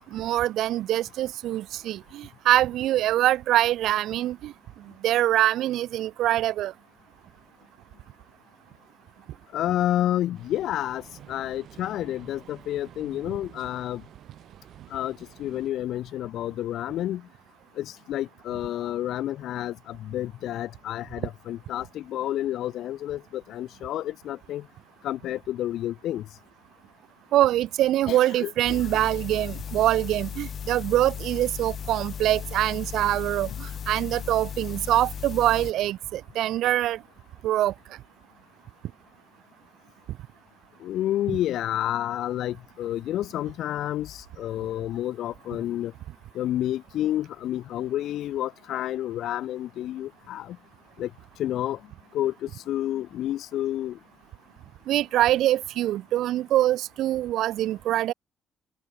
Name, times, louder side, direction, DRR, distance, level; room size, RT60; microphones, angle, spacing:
voice 1, 0.1-4.5 5.0-6.7 27.3-37.0 37.4-37.7 54.9-58.1, right 13 dB, 90° right, 0.8 m, -24 dB
voice 2, 9.5-14.0 14.9-17.2 17.8-24.6 25.0-26.3 28.1-28.8 40.8-45.9 46.3-50.6 51.0-51.1 51.4-51.8 52.1-54.0, left 13 dB, 75° left, 0.5 m, -30 dB
sound 1, 10.3-15.7, right 11 dB, 60° right, 3.5 m, -50 dB
sound 2, 28.6-35.7, left 8 dB, 45° left, 0.7 m, -36 dB
open air
cardioid pair, 160°, 0 cm